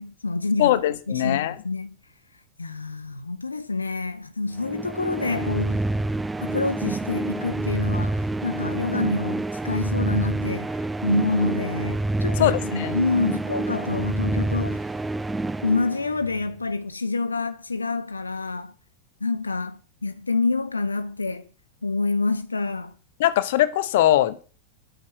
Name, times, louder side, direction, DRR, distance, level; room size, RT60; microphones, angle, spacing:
voice 1, 0.0-0.8 1.1-1.9 2.6-5.8 6.4-14.9 15.6-18.7 19.2-21.5 21.8-22.9, left 3 dB, 80° left, 0.8 m, -27 dB
voice 2, 0.6-1.5 12.4-12.9 23.2-24.4, left 13 dB, 55° left, 1.1 m, -21 dB
sound 1, 4.6-16.4, right 2 dB, 10° right, 0.5 m, -28 dB
11.0 x 8.6 x 6.3 m
figure-of-eight pair, 90°, 0 cm